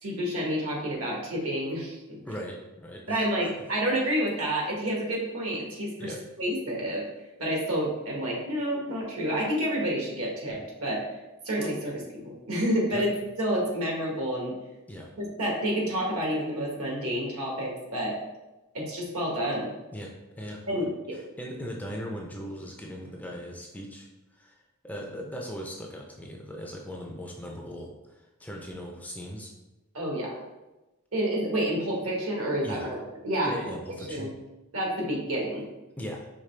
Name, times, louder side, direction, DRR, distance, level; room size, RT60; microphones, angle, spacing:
voice 1, 0.0-2.2 3.1-7.0 7.4-11.0 11.4-14.6 15.2-18.2 18.7-19.7 20.7-21.2 29.9-30.4 31.1-33.0 33.2-33.7 34.1-34.3 34.7-35.6, equal, 70° right, -2 dB, 1.4 m, -29 dB
voice 2, 2.3-3.3 6.0-6.2 12.9-13.0 14.9-15.1 19.9-20.1 20.4-20.6 21.4-24.6 24.8-29.5 32.6-32.9 33.4-34.3 36.0-36.2, equal, 5° left, 0 dB, 0.5 m, -38 dB
5.2 x 3.1 x 3.2 m, 1.0 s
head